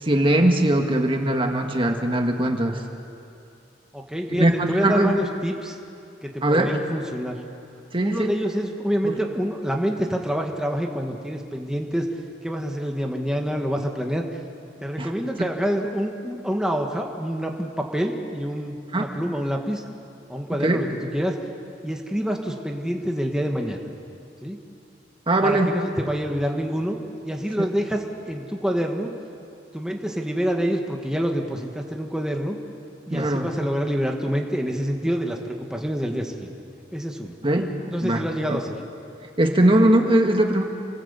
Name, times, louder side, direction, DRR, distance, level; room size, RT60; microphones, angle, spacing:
voice 1, 0.0-2.8 4.3-5.1 6.4-6.8 7.9-8.3 9.0-9.1 15.0-15.1 18.9-19.1 20.5-20.8 25.3-25.7 33.1-33.5 37.4-37.7 38.0-38.6 39.4-40.6, right 1 dB, 30° right, 4 dB, 1.7 m, -21 dB
voice 2, 3.9-5.8 6.2-7.4 8.0-12.1 12.4-14.4 14.8-19.8 20.3-21.4 21.8-23.8 24.4-24.6 25.4-27.0 27.2-29.1 29.7-32.6 33.1-36.5 36.9-37.3 37.9-38.7, equal, 5° right, 2 dB, 1.6 m, -27 dB
28.0 x 19.5 x 8.2 m, 2.6 s
head